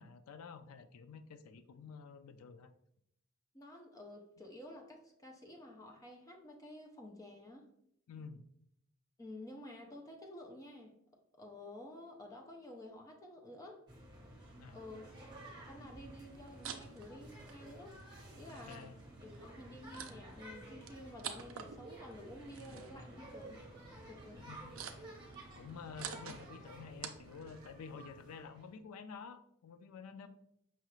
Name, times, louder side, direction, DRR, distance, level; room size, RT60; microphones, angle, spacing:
voice 1, 0.0-2.7 8.1-8.4 14.6-14.8 18.5-19.0 24.4-25.0 25.5-30.3, left 5 dB, 85° left, 10 dB, 0.4 m, -50 dB
voice 2, 3.5-7.7 9.2-11.0 11.4-13.8 14.7-15.1 15.7-18.0 18.3-18.9 19.2-23.6 24.1-24.4, left 1 dB, 15° left, 1 dB, 0.5 m, -51 dB
sound 1, 13.9-28.8, right 1 dB, 20° right, 1.1 m, -53 dB
sound 2, 16.2-27.7, right 7 dB, 65° right, 0.4 m, -51 dB
5.6 x 2.4 x 3.0 m, 0.74 s
head